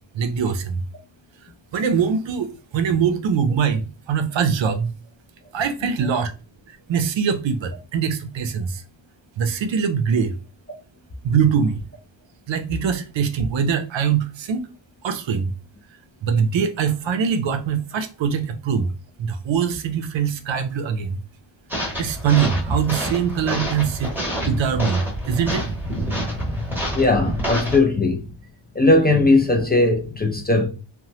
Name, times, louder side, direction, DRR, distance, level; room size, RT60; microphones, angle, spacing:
voice 1, 0.1-0.8 1.7-4.9 5.5-6.3 6.9-8.8 9.4-10.3 11.2-11.8 12.5-14.7 15.0-15.5 16.2-18.9 19.2-21.2 22.0-24.1 24.5-25.7, right 6 dB, 65° right, 0.5 m, -22 dB
sound 1, 21.7-27.8, equal, 5° right, 0.9 m, -27 dB
voice 2, 26.3-26.6 26.9-28.3 28.8-30.7, left 2 dB, 20° left, 0.3 m, -18 dB
2.9 x 2.2 x 2.7 m
wide cardioid pair, 150°, 49 cm